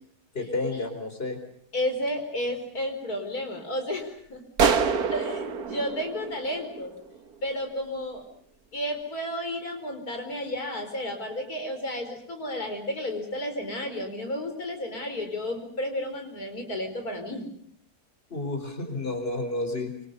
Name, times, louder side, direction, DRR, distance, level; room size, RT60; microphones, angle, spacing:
voice 1, 0.3-1.4 18.3-19.9, left 2 dB, 40° left, 5 dB, 4.5 m, -30 dB
voice 2, 1.7-4.4 5.1-6.9 7.4-8.2 8.7-17.5, left 1 dB, 85° left, 5 dB, 5.1 m, -32 dB
sound 1, 4.6-7.2, right 6 dB, 90° right, 1.9 m, -26 dB
25.5 x 25.0 x 6.8 m, 0.68 s
omnidirectional pair, 1.6 m